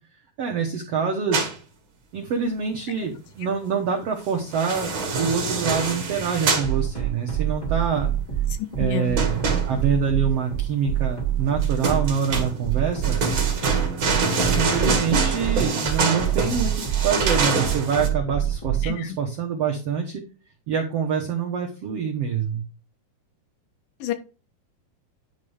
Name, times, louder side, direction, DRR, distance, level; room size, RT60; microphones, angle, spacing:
voice 1, 0.4-1.5 2.1-8.1 8.8-9.4 9.7-13.2 14.5-20.2 20.7-22.6, right 6 dB, 85° right, 1 dB, 1.3 m, -26 dB
sound 1, 1.3-1.5 4.3-6.7 9.2-10.0 11.6-18.1, right 4 dB, 40° right, 2.1 m, -25 dB
sound 2, 6.6-18.9, right 11 dB, 10° left, 2.7 m, -25 dB
voice 2, 8.6-9.2 18.8-19.2 24.0-24.1, left 11 dB, 80° left, 11 dB, 2.2 m, -29 dB
10.5 x 5.5 x 3.4 m, 0.34 s
omnidirectional pair, 4.4 m